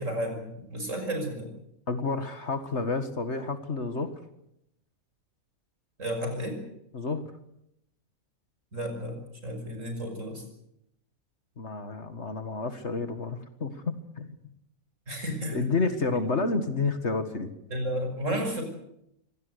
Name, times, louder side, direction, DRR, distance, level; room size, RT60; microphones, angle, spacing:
voice 1, 0.0-1.5 6.0-6.6 8.7-10.4 15.1-15.6 17.7-18.6, equal, 55° right, 5 dB, 6.3 m, -32 dB
voice 2, 1.9-4.2 6.9-7.3 11.6-14.3 15.5-17.5, left 3 dB, 50° left, 9 dB, 2.0 m, -30 dB
25.0 x 18.0 x 8.1 m, 0.78 s
omnidirectional pair, 1.5 m